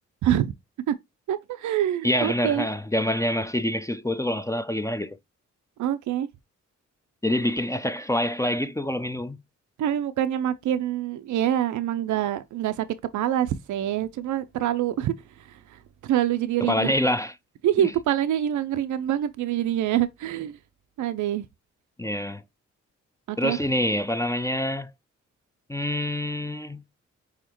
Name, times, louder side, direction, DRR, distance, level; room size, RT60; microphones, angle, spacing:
voice 1, 0.2-0.5 0.9-1.0 1.3-2.7 5.8-6.3 9.8-12.9 13.1-15.1 15.4-16.9 17.6-20.6 21.0-21.5 23.3-23.6, right 11 dB, 75° right, 0.5 m, -25 dB
voice 2, 2.0-5.2 7.2-9.4 16.6-17.3 22.0-22.4 23.4-24.9 25.7-26.8, left 1 dB, 10° left, 0.5 m, -26 dB
4.8 x 3.5 x 2.9 m
supercardioid pair, 45°, 30 cm